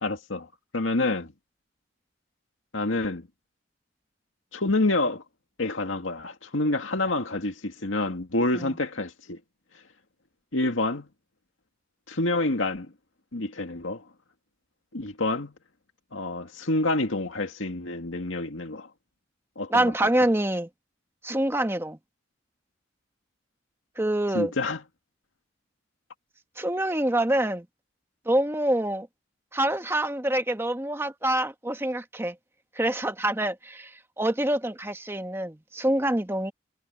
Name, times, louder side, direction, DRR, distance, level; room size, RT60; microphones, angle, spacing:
voice 1, 0.0-1.3 2.7-3.3 4.5-5.2 5.6-9.4 10.5-11.1 12.1-12.9 13.3-14.1 14.9-15.5 16.1-18.9 19.6-20.1 24.3-24.8, left 2 dB, 85° left, 2.1 m, -28 dB
voice 2, 19.7-20.7 21.2-22.0 24.0-24.5 26.6-27.6 28.2-29.1 29.5-32.3 32.7-33.9 34.2-36.5, right 1 dB, 15° right, 1.5 m, -26 dB
head